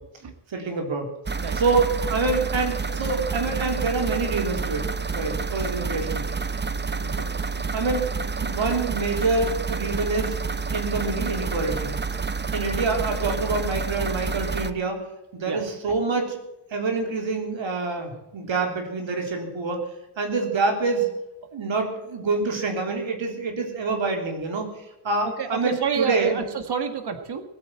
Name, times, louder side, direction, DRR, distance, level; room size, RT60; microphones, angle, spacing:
voice 1, 0.5-1.1 1.5-4.9 5.1-6.2 7.0-7.3 7.6-8.0 8.4-10.4 10.7-12.0 12.5-15.0 15.3-16.4 16.7-19.8 20.2-21.1 21.5-24.7 25.0-26.4, right 3 dB, 70° right, 3 dB, 3.8 m, -26 dB
sound 1, 1.3-14.7, right 4 dB, 20° right, 0.8 m, -29 dB
voice 2, 1.4-1.8 13.2-13.4 15.5-15.6 25.2-27.4, right 6 dB, 55° right, 7 dB, 1.9 m, -29 dB
20.0 x 9.2 x 7.5 m, 0.92 s
wide cardioid pair, 150°, 48 cm